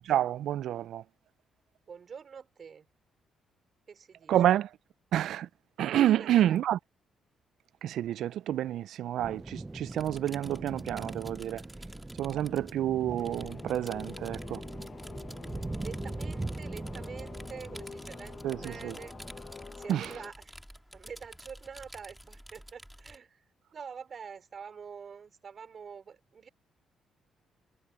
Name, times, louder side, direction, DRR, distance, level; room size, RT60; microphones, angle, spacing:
voice 1, 0.1-1.0 4.3-4.7 5.1-5.5 5.8-6.8 7.8-11.6 12.2-14.6 18.4-18.9 19.9-20.1, right 12 dB, 75° right, 0.4 m, -28 dB
voice 2, 1.9-2.9 3.9-4.7 6.2-6.6 15.8-19.1 19.8-20.5 20.9-23.4 23.7-26.5, right 6 dB, 50° right, 5.2 m, -46 dB
sound 1, 9.2-19.7, right 2 dB, 15° right, 0.5 m, -41 dB
sound 2, 9.9-23.2, equal, ahead, 3.5 m, -50 dB
sound 3, 13.2-20.3, left 5 dB, 40° left, 1.3 m, -47 dB
cardioid pair, 90°, 0 cm